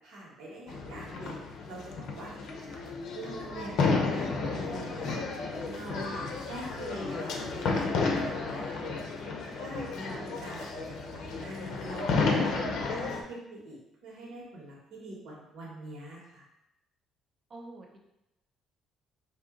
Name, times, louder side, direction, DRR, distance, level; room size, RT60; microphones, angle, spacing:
voice 1, 0.0-2.3 3.1-3.8 4.1-8.9 9.5-16.4, right 1 dB, 75° right, -4 dB, 1.4 m, -44 dB
sound 1, 0.7-13.2, left 4 dB, 60° left, 0.6 m, -32 dB
voice 2, 17.5-18.0, right 2 dB, 35° right, 1 dB, 0.6 m, -48 dB
3.7 x 2.7 x 3.8 m, 0.88 s
cardioid pair, 150°, 0 cm